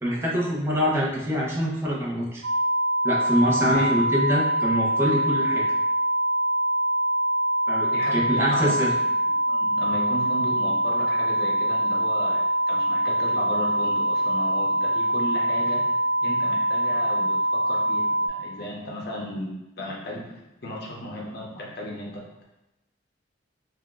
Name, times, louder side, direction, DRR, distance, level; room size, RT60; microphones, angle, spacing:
voice 1, 0.0-2.4 3.0-5.7 7.7-8.9, equal, 15° right, -5 dB, 0.6 m, -25 dB
sound 1, 2.4-18.3, right 1 dB, 90° right, 0.7 m, -24 dB
voice 2, 3.7-4.0 7.9-8.9 9.2-15.9 16.2-19.5 19.8-20.3 20.6-22.4, left 1 dB, 55° left, -2 dB, 0.6 m, -35 dB
2.8 x 2.0 x 3.5 m, 0.94 s
head